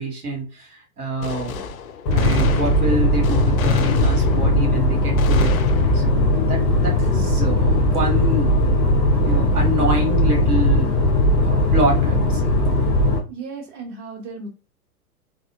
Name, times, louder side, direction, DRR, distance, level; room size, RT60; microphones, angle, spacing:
voice 1, 0.0-1.7 2.1-5.5 5.9-8.6 9.2-10.9 11.4-12.6, right 2 dB, 70° right, 0 dB, 1.3 m, -26 dB
Gunshot gunfire, 1.2-4.7 5.2-6.3, left 5 dB, 65° left, 0.6 m, -29 dB
sound 1, 2.1-13.2, left 1 dB, 20° left, 0.3 m, -18 dB
voice 2, 13.3-14.5, right 4 dB, 50° right, -1 dB, 1.2 m, -35 dB
3.4 x 2.4 x 2.5 m, 0.32 s
figure-of-eight pair, 95°, 46 cm